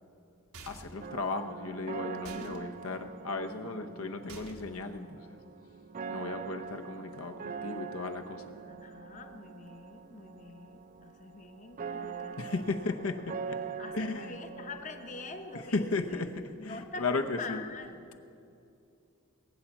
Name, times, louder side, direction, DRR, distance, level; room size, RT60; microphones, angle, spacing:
sound 1, 0.5-1.0 2.2-2.6 4.3-4.8, right 3 dB, 85° right, 1.5 m, -48 dB
voice 1, 0.7-5.4 6.1-8.5 12.4-13.6 13.9-14.7 15.5-17.6, left 3 dB, 75° left, 6 dB, 0.9 m, -35 dB
sound 2, 1.0-16.0, right 6 dB, 40° right, 0.5 m, -43 dB
voice 2, 2.3-2.8 8.7-13.1 13.8-16.3 16.6-18.1, left 3 dB, 35° left, 6 dB, 0.8 m, -45 dB
20.0 x 8.9 x 7.1 m, 2.6 s
head